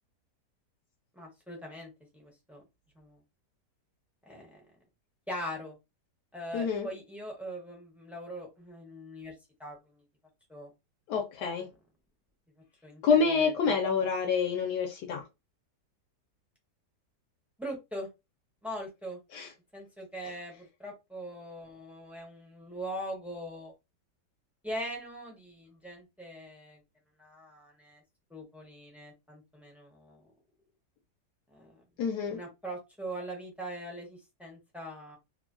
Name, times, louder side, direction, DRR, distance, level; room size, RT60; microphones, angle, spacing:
voice 1, 1.1-2.6 3.0-3.2 4.2-4.7 5.3-5.8 6.3-10.0 10.5-10.7 12.8-13.8 17.6-18.1 18.6-19.2 19.7-23.7 24.6-26.8 27.2-28.0 28.3-30.3 31.5-31.8 32.3-35.2, equal, ahead, 0.3 m, -41 dB
voice 2, 6.5-6.9 11.1-11.7 13.0-15.2 19.3-19.5 32.0-32.4, left 5 dB, 75° left, 1.1 m, -27 dB
3.1 x 2.2 x 2.5 m
omnidirectional pair, 1.8 m